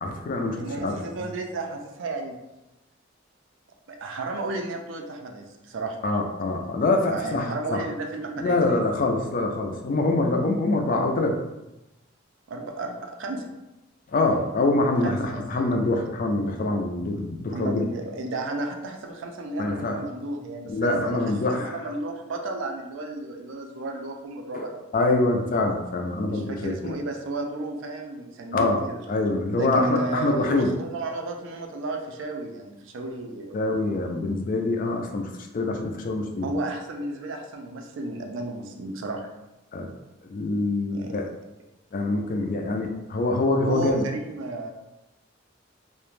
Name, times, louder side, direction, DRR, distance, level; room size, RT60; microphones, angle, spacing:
voice 1, 0.0-1.0 6.0-7.8 8.4-11.4 14.1-17.9 19.6-20.0 20.7-21.9 24.5-24.7 24.9-26.9 28.5-28.8 29.1-30.7 33.5-36.5 39.7-39.9 40.2-41.2 41.9-44.0, left 2 dB, 40° left, 3 dB, 0.3 m, -25 dB
voice 2, 0.5-2.4 3.9-6.0 7.0-8.6 12.5-13.4 15.0-15.8 17.5-21.2 21.5-24.8 26.2-29.0 29.5-33.7 36.4-39.3 40.9-41.2 43.6-44.7, right 2 dB, 70° right, 3 dB, 0.4 m, -33 dB
2.4 x 2.1 x 3.1 m, 0.97 s
head